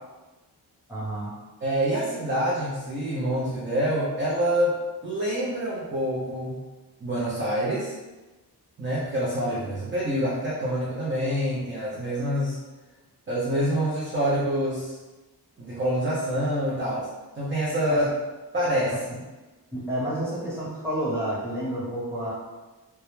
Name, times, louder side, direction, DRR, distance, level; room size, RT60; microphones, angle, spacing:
voice 1, 0.9-1.3 17.9-18.0 18.9-19.0 19.7-22.3, right 1 dB, 5° right, -9 dB, 0.9 m, -30 dB
voice 2, 1.6-4.8 5.0-6.6 7.0-7.9 8.8-12.6 13.3-15.0 15.6-17.1 17.4-18.1 18.5-18.9, equal, 30° right, -8 dB, 0.5 m, -26 dB
2.2 x 2.1 x 3.0 m, 1.2 s
wide cardioid pair, 125°, 40 cm